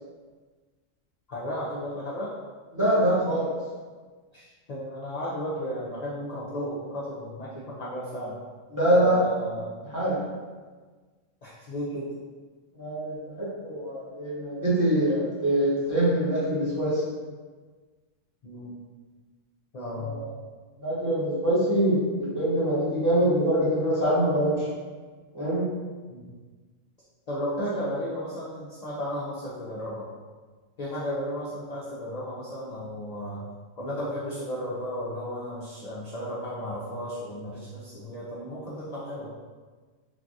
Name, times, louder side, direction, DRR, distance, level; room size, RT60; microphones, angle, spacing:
voice 1, 1.3-2.3 4.3-8.4 8.9-9.7 11.4-12.1 18.4-18.8 19.7-20.2 26.1-26.3 27.3-30.1 30.8-33.4 33.8-39.3, equal, 55° left, -7 dB, 0.4 m, -34 dB
voice 2, 2.7-3.5 8.7-9.2 9.9-10.2 12.7-17.0 19.9-20.3 20.8-24.7 25.3-25.7, right 1 dB, 20° right, -10 dB, 0.7 m, -24 dB
3.2 x 2.3 x 2.6 m, 1.4 s
omnidirectional pair, 1.3 m